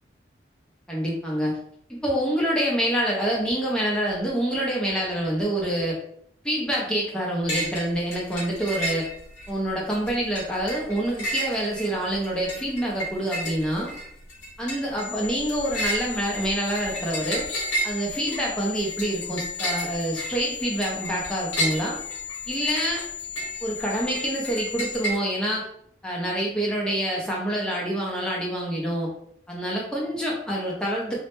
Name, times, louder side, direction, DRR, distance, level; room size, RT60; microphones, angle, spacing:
voice 1, 0.9-1.6 1.9-6.0 6.4-9.1 9.5-13.9 14.6-17.5 17.8-22.0 22.5-23.1 23.6-25.6 26.0-29.1 29.5-31.2, right 1 dB, 5° left, -4 dB, 0.5 m, -26 dB
sound 1, 7.5-7.9 8.1-9.5 9.9-25.2, right 1 dB, 85° left, 0.7 m, -32 dB
sound 2, 15.0-25.0, left 9 dB, 40° left, 0.8 m, -37 dB
2.1 x 2.0 x 2.9 m, 0.68 s
head